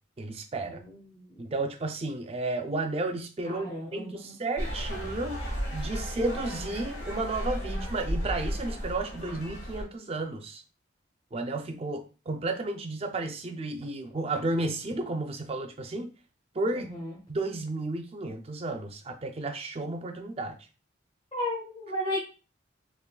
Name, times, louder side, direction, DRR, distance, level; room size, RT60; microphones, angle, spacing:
voice 1, 0.2-0.8 1.4-5.4 5.7-10.6 11.3-16.1 16.5-16.9 17.3-20.6, right 2 dB, 30° right, 6 dB, 0.4 m, -32 dB
voice 2, 0.7-1.4 3.4-4.4 16.7-17.2 21.3-22.2, left 1 dB, 30° left, -5 dB, 0.9 m, -34 dB
sound 1, 4.6-9.8, equal, 70° left, 1.5 m, -34 dB
3.7 x 3.1 x 2.2 m, 0.33 s
head